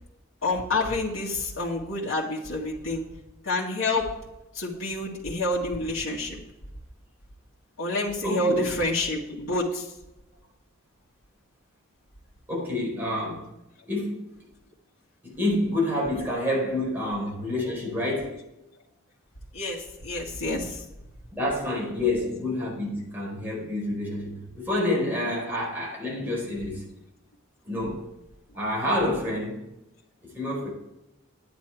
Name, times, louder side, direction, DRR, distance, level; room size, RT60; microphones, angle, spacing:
voice 1, 0.4-3.0 3.4-4.1 4.5-6.4 7.8-9.9 19.5-20.8, left 2 dB, 90° left, -5 dB, 2.0 m, -28 dB
voice 2, 8.2-8.6 12.5-13.5 13.9-14.3 15.2-18.4 21.3-26.9 27.6-28.1 28.5-29.7 30.2-30.7, left 1 dB, 10° right, -4 dB, 4.7 m, -28 dB
10.5 x 9.7 x 4.7 m, 0.92 s
head